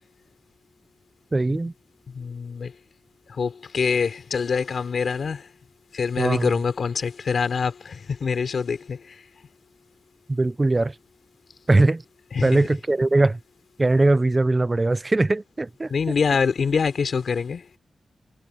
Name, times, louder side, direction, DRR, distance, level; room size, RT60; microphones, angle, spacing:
voice 1, 1.3-1.7 6.2-6.5 10.3-10.9 11.7-12.0 12.4-13.4 13.8-15.9, right 2 dB, 25° right, 0.5 m, -20 dB
voice 2, 2.1-2.7 3.3-5.5 5.9-9.2 12.3-12.6 15.9-17.8, left 5 dB, 65° left, 3.6 m, -25 dB
wide cardioid pair, 130°, 0 cm